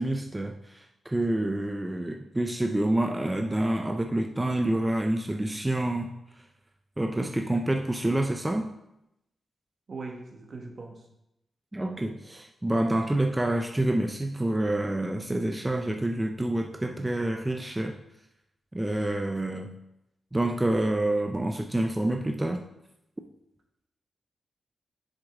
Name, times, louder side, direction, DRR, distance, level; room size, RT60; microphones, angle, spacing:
voice 1, 0.0-6.1 7.0-8.7 11.7-18.0 18.7-19.7 20.3-22.7, right 1 dB, 20° right, 4 dB, 0.6 m, -27 dB
voice 2, 9.9-11.1, right 3 dB, 60° right, 1 dB, 1.6 m, -40 dB
7.4 x 6.6 x 3.7 m, 0.85 s
supercardioid pair, 40°, 0 cm